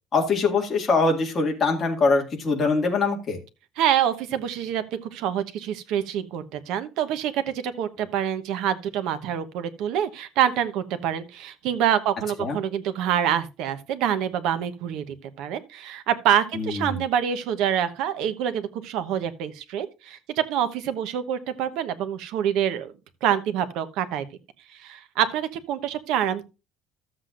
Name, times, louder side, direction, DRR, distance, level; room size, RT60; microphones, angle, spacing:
voice 1, 0.1-3.4 12.4-12.6 16.5-17.0, left 3 dB, 25° left, 2.1 m, -23 dB
voice 2, 3.8-22.9 23.2-24.2 24.7-26.4, right 9 dB, 65° right, 1.0 m, -26 dB
13.0 x 7.6 x 2.5 m
cardioid pair, 175°, 0 cm